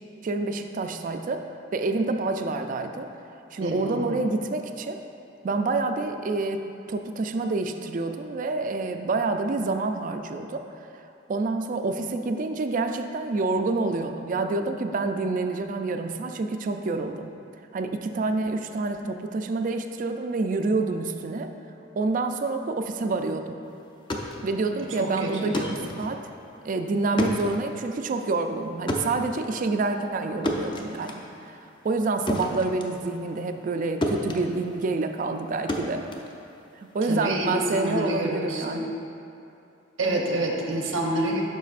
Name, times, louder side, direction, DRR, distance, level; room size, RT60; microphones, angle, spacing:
voice 1, 0.2-1.5 1.7-3.1 3.5-5.0 5.4-10.6 11.3-17.3 17.7-21.5 22.0-23.6 24.4-26.2 26.6-31.6 31.8-36.0 36.8-38.9, right 3 dB, 40° right, 6 dB, 0.3 m, -27 dB
voice 2, 3.6-4.1 25.0-25.6 37.1-38.8 40.0-41.4, right 1 dB, 85° right, 0 dB, 0.9 m, -27 dB
sound 1, 23.9-33.8 34.0-37.0, left 1 dB, 25° left, 0.5 m, -33 dB
9.3 x 6.0 x 2.5 m, 2.7 s
head